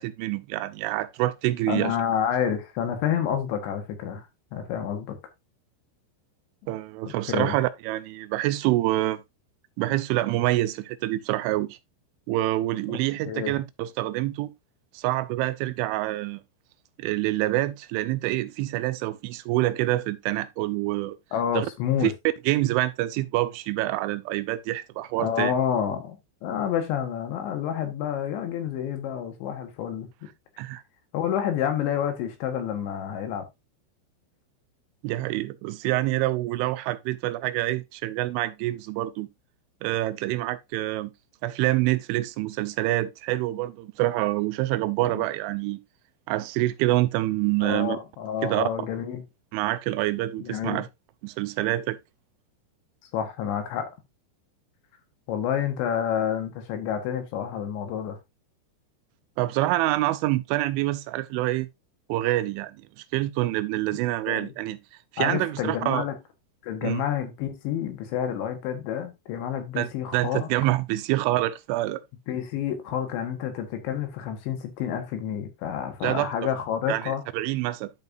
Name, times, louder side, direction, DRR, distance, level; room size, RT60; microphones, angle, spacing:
voice 1, 0.0-2.0 6.7-9.2 9.8-11.8 12.3-14.5 14.9-16.4 17.0-21.2 21.5-21.7 22.0-22.1 22.5-25.5 30.6-30.8 35.0-39.3 39.8-41.1 41.4-45.8 46.3-48.0 48.4-48.6 49.5-50.9 51.2-52.0 59.4-61.7 62.1-62.8 63.1-64.8 65.1-66.0 66.8-67.0 69.8-72.0 76.0-76.3 76.9-77.9, right 16 dB, 85° right, 2.9 m, -26 dB
voice 2, 1.7-4.3 4.5-5.2 7.1-7.6 12.9-13.0 13.3-13.6 21.3-22.1 25.2-30.3 31.1-33.5 45.1-45.2 47.6-49.2 50.4-50.8 53.1-53.9 55.3-58.2 64.3-64.5 65.2-66.2 66.6-70.5 72.3-77.2, left 9 dB, 75° left, 3.5 m, -29 dB
12.0 x 5.3 x 2.6 m
omnidirectional pair, 5.6 m